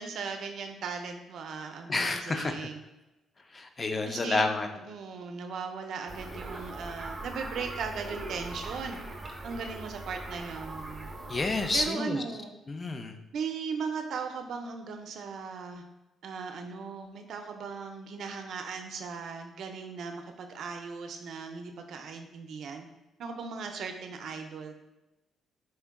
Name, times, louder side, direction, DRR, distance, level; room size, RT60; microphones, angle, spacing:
voice 1, 0.0-2.8 4.1-4.5 4.8-9.0 9.4-11.1 11.7-12.5 13.3-15.8 16.2-22.9 23.2-24.7, right 5 dB, 70° right, 5 dB, 0.5 m, -38 dB
voice 2, 1.9-2.5 3.5-4.7 11.3-12.2 12.7-13.2, left 3 dB, 30° left, 6 dB, 0.4 m, -29 dB
sound 1, 6.1-11.9, right 2 dB, 25° right, 0.7 m, -41 dB
4.3 x 3.4 x 2.2 m, 1.0 s
cardioid pair, 90°, 0 cm